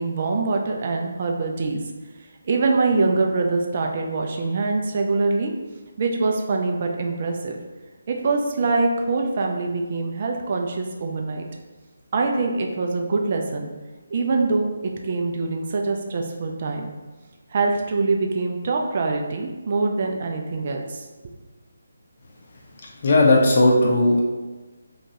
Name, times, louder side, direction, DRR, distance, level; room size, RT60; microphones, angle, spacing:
voice 1, 0.0-1.8 2.5-5.5 6.0-7.6 8.1-11.4 12.1-13.7 14.1-16.9 17.5-21.0, right 3 dB, 40° right, 2 dB, 0.3 m, -24 dB
voice 2, 23.0-24.2, left 2 dB, 45° left, -2 dB, 0.6 m, -16 dB
2.8 x 2.3 x 2.7 m, 1.2 s
figure-of-eight pair, 150°, 0 cm